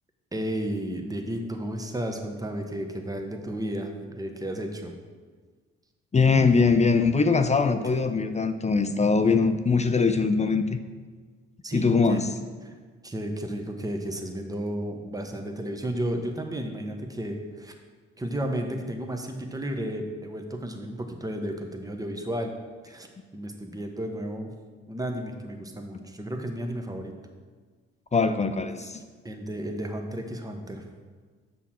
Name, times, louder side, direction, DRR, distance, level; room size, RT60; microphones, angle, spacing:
voice 1, 0.3-4.9 11.6-12.2 12.6-12.7 13.0-17.7 18.2-22.5 22.8-24.5 24.9-27.1 28.8-28.9 29.2-30.8, right 1 dB, 10° right, 4 dB, 1.1 m, -33 dB
voice 2, 6.1-10.8 11.7-12.3 28.1-29.0, left 4 dB, 25° left, 9 dB, 0.6 m, -22 dB
6.9 x 6.1 x 4.4 m, 1.5 s
hypercardioid pair, 50°, 30 cm